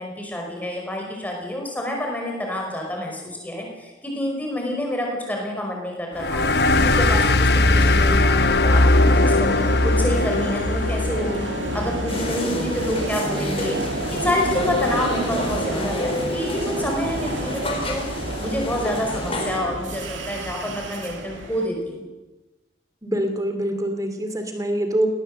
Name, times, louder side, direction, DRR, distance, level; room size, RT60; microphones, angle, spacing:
voice 1, 0.0-6.4 6.8-18.1 18.4-22.1, left 1 dB, 10° left, 0 dB, 5.2 m, -28 dB
sound 1, 6.2-13.3, left 2 dB, 55° left, 1.0 m, -20 dB
sound 2, 8.7-21.7, right 1 dB, 90° right, 2.4 m, -30 dB
sound 3, 12.1-19.6, left 1 dB, 30° left, 4.2 m, -29 dB
voice 2, 23.0-25.1, right 1 dB, 20° right, 6 dB, 2.6 m, -24 dB
19.0 x 18.0 x 7.7 m, 1.1 s
head